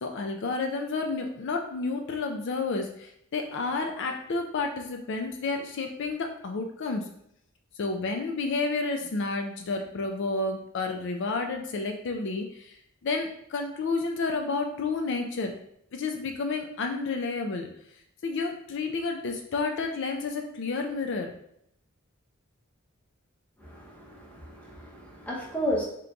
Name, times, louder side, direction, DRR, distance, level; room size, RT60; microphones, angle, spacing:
voice 1, 0.0-7.1 7.8-15.5 15.9-17.7 18.2-21.3, left 3 dB, 60° left, 4 dB, 0.4 m, -30 dB
voice 2, 23.6-25.8, equal, 5° left, -3 dB, 0.8 m, -33 dB
3.8 x 2.9 x 3.4 m, 0.72 s
head